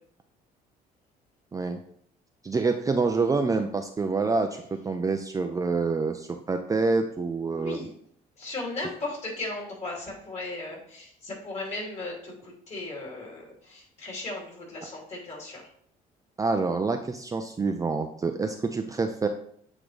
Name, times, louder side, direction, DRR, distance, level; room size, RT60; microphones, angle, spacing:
voice 1, 2.4-7.8 16.4-19.3, right 4 dB, 20° right, 5 dB, 0.4 m, -27 dB
voice 2, 7.5-7.9 8.4-15.7, left 2 dB, 40° left, -2 dB, 2.7 m, -36 dB
8.1 x 3.7 x 3.2 m, 0.64 s
cardioid pair, 110°, 17 cm